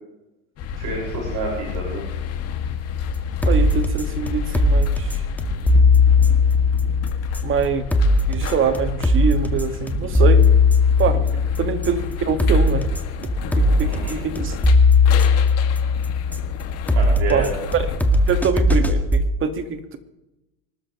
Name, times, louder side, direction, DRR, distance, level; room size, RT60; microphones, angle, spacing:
sound 1, 0.6-18.4, left 7 dB, 45° left, 2.3 m, -31 dB
voice 1, 0.8-2.1 13.8-14.2 16.9-17.6, right 4 dB, 55° right, -3 dB, 6.0 m, -29 dB
sound 2, 3.0-19.2, left 3 dB, 5° left, 1.8 m, -19 dB
voice 2, 3.5-5.2 7.4-7.9 8.3-10.5 11.0-11.2 11.6-12.9 13.6-14.6 17.3-17.8 18.3-20.0, right 6 dB, 35° right, 8 dB, 2.0 m, -24 dB
25.5 x 13.0 x 3.2 m, 0.96 s
hypercardioid pair, 85°, 34 cm